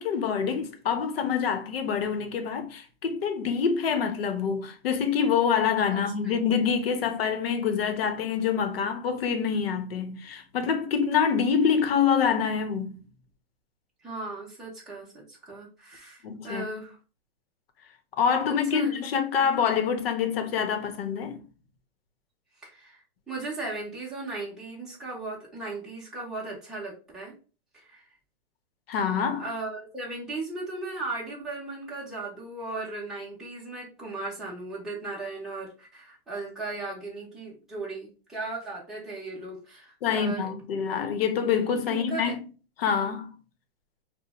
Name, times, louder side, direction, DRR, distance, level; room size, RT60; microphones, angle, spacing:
voice 1, 0.0-13.0 16.2-16.9 18.2-21.4 28.9-29.5 40.0-42.5 42.8-43.4, left 7 dB, 70° left, 0.8 m, -26 dB
voice 2, 5.9-6.4 14.0-17.0 18.6-19.1 19.4-19.5 22.6-27.3 27.7-28.1 29.4-40.5 41.9-42.4, right 3 dB, ahead, 0.7 m, -37 dB
2.8 x 2.1 x 4.1 m
hypercardioid pair, 160°, 31 cm